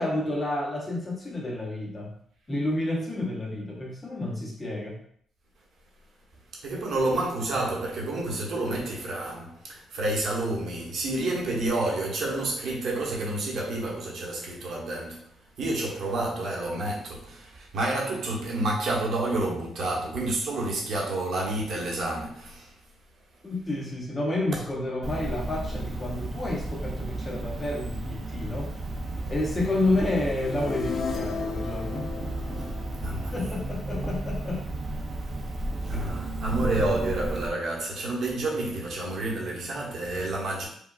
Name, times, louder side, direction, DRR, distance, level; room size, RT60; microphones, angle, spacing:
voice 1, 0.0-2.2 2.5-5.0 23.4-28.7 29.3-32.1 33.3-34.6 35.9-36.0, left 2 dB, 25° left, 0.7 m, -30 dB
voice 2, 6.5-22.8 33.0-33.4 35.9-40.7, right 2 dB, 65° right, 1.1 m, -29 dB
Cricket, 25.0-37.5, right 2 dB, 45° right, 0.6 m, -33 dB
sound 1, 30.0-34.0, left 6 dB, 65° left, 0.4 m, -36 dB
4.8 x 2.2 x 2.3 m
cardioid pair, 95°, 0 cm